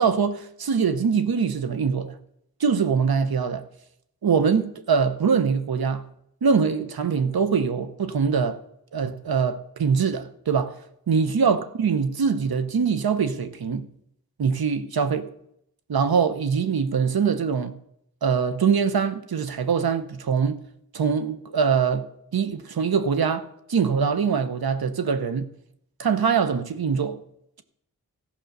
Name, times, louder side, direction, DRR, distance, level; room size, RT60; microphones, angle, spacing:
voice 1, 0.0-2.2 2.6-3.6 4.2-6.0 6.4-8.6 8.9-10.8 11.1-13.9 14.4-15.3 15.9-17.8 18.2-20.6 20.9-22.1 22.3-25.5 26.0-27.2, right 6 dB, 90° right, 0.9 m, -23 dB
14.5 x 5.2 x 6.6 m
wide cardioid pair, 60°, 35 cm